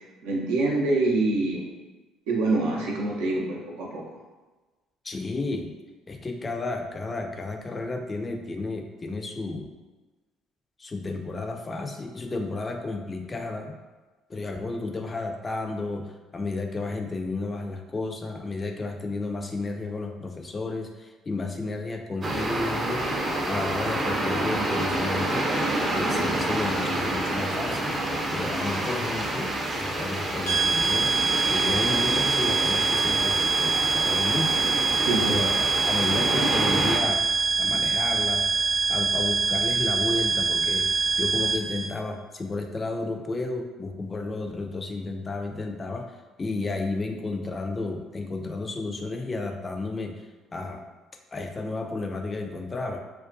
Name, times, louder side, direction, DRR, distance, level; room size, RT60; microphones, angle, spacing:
voice 1, 0.2-1.6 2.3-4.0 35.1-35.4, right 2 dB, 80° right, -2 dB, 0.5 m, -25 dB
voice 2, 5.0-5.8 6.1-9.7 10.8-13.8 14.3-23.2 23.5-25.5 25.9-28.0 28.3-31.2 31.5-34.7 35.3-37.2 37.6-38.5 38.9-46.1 46.4-50.1 50.5-50.8 51.3-53.0, left 3 dB, 30° left, 4 dB, 0.3 m, -32 dB
sound 1, 22.2-37.0, right 1 dB, 35° right, 0.5 m, -28 dB
sound 2, 30.5-41.9, right 5 dB, 80° left, 0.5 m, -24 dB
2.3 x 2.2 x 2.5 m, 1.2 s
hypercardioid pair, 65°, 0 cm